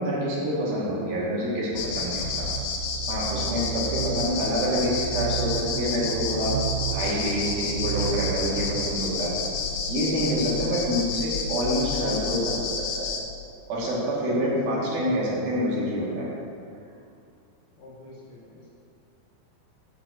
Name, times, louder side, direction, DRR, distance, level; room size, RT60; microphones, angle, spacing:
voice 1, 0.0-2.5 3.1-6.6 6.9-9.3 9.9-13.1 13.7-16.3, equal, 70° right, -6 dB, 3.7 m, -27 dB
sound 1, 1.7-9.0, right 9 dB, 90° right, 2.0 m, -33 dB
sound 2, 1.8-13.2, left 5 dB, 80° left, 3.0 m, -30 dB
voice 2, 4.0-4.5 9.1-9.6 10.6-11.1 14.4-15.0 17.8-18.7, left 2 dB, 60° left, -5 dB, 2.5 m, -44 dB
7.7 x 5.9 x 7.4 m, 2.4 s
omnidirectional pair, 4.6 m